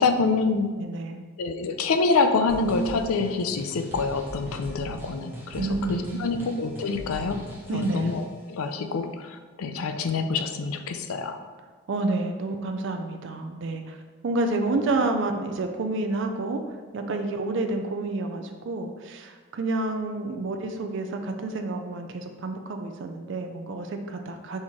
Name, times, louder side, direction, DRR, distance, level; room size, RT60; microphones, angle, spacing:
voice 1, 0.0-0.8 1.4-7.5 7.7-11.4, left 4 dB, 80° left, 7 dB, 0.4 m, -26 dB
voice 2, 0.8-1.2 5.6-6.4 7.7-8.1 11.9-14.0 14.2-16.6 16.9-24.6, right 2 dB, 55° right, 5 dB, 0.4 m, -29 dB
sound 1, 2.5-8.3, equal, 10° right, 0.6 m, -41 dB
4.2 x 3.0 x 3.6 m, 1.4 s
head